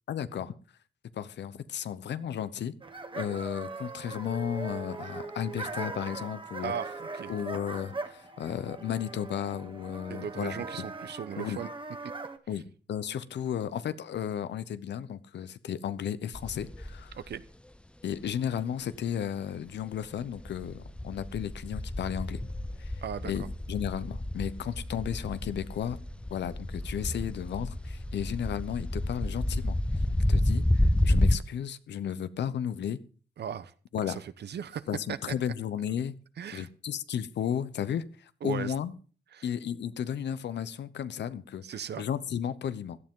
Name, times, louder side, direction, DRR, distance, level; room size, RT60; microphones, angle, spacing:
voice 1, 0.1-0.5 1.1-2.7 3.2-6.7 7.3-10.6 11.4-11.6 12.5-17.1 18.0-22.4 22.8-22.9 23.2-26.0 26.3-29.8 30.3-33.0 33.9-34.2 34.9-36.1 36.5-39.0 39.4-41.6 42.0-43.0, left 9 dB, 85° left, 14 dB, 0.9 m, -34 dB
sound 1, 2.8-12.4, right 3 dB, 30° right, 1.5 m, -40 dB
voice 2, 6.6-7.3 10.1-11.7 12.0-12.1 12.5-12.6 17.1-17.4 23.0-23.5 33.4-34.8 35.1-35.3 36.4-36.7 38.4-38.7 39.3-39.5 41.6-42.0, right 8 dB, 75° right, 14 dB, 0.9 m, -37 dB
sound 2, 16.3-17.4 19.9-20.0 20.2-31.4, left 1 dB, 5° left, 0.5 m, -30 dB
16.5 x 12.0 x 3.8 m, 0.40 s
cardioid pair, 95°, 18 cm